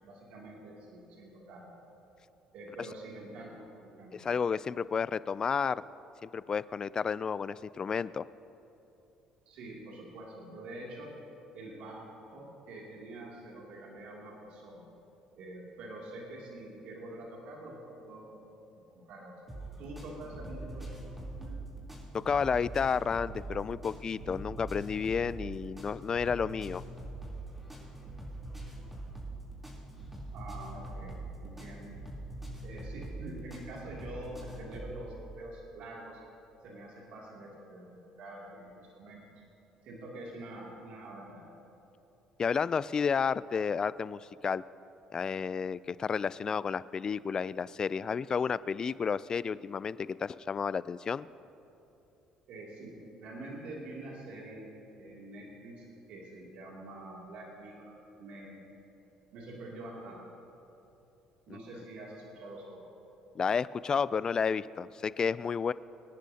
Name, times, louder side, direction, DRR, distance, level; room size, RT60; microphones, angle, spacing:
voice 1, 0.0-1.7 2.5-4.3 9.5-11.1 11.5-12.0 12.3-14.9 15.4-18.4 18.9-19.3 19.8-20.9 21.4-21.6 30.3-32.0 32.6-36.2 36.6-39.2 39.8-41.5 52.5-52.9 53.2-54.6 54.9-58.6 59.3-60.2 61.5-62.9, right 1 dB, 70° right, -3 dB, 2.7 m, -46 dB
voice 2, 4.1-5.8 6.2-8.2 22.1-26.8 42.4-44.6 45.1-51.3 61.5-61.6 63.4-65.7, left 6 dB, 35° left, 18 dB, 0.3 m, -31 dB
sound 1, 19.5-35.0, right 2 dB, 10° right, 3.5 m, -43 dB
24.5 x 10.5 x 2.9 m, 2.9 s
supercardioid pair, 80°, 2 cm